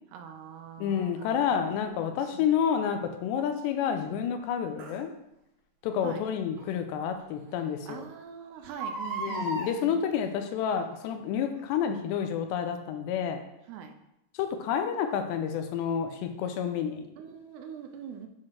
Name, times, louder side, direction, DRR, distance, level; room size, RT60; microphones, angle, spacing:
voice 1, 0.1-1.7 2.0-2.5 6.0-6.2 7.9-10.0 13.7-13.9 17.2-18.3, right 7 dB, 80° right, 5 dB, 2.7 m, -43 dB
voice 2, 0.8-5.1 5.8-8.1 9.2-13.4 14.3-17.1, left 8 dB, 85° left, 7 dB, 2.9 m, -29 dB
Crying sobbing, 2.2-2.3 4.8-5.0 6.6-6.7 7.2-7.3 7.5-7.6 8.6-9.7 10.7-11.0 11.6-11.7, right 2 dB, 60° right, 2.7 m, -35 dB
8.7 x 3.9 x 6.3 m, 0.87 s
omnidirectional pair, 5.0 m